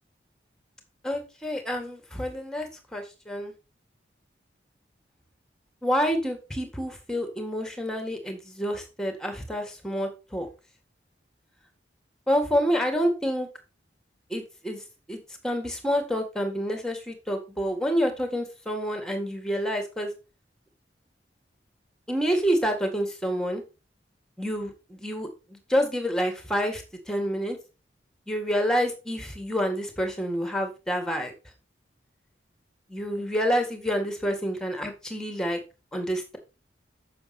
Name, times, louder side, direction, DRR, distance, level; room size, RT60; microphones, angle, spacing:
voice 1, 1.0-3.5 5.8-10.5 12.3-13.5 14.3-15.2 15.4-20.1 22.1-23.6 24.4-27.6 28.3-31.3 32.9-35.6 35.9-36.4, equal, 5° left, 4 dB, 1.9 m, -28 dB
7.5 x 7.0 x 4.3 m, 0.30 s
head